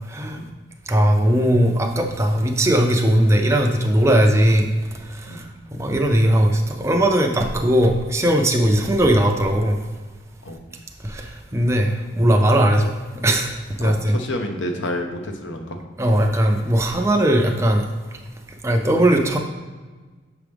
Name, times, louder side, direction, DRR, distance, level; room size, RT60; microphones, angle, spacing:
voice 1, 0.9-4.7 5.1-9.8 11.0-12.9 13.2-13.5 13.8-14.2 16.0-17.9 18.6-19.4, right 1 dB, 15° right, 2 dB, 0.5 m, -18 dB
voice 2, 13.8-15.8, left 1 dB, 60° left, 4 dB, 0.8 m, -29 dB
6.8 x 4.7 x 3.5 m, 1.4 s
head